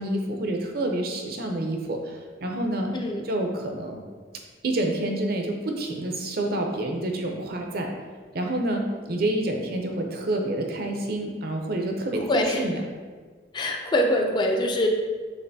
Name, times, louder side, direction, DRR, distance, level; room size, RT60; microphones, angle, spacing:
voice 1, 0.0-2.9 3.2-4.0 4.6-7.9 8.3-12.8, right 1 dB, 60° right, 2 dB, 0.6 m, -28 dB
voice 2, 2.9-3.3 12.3-12.6 13.5-14.9, left 1 dB, 25° left, 2 dB, 0.4 m, -24 dB
6.6 x 2.5 x 2.7 m, 1.5 s
head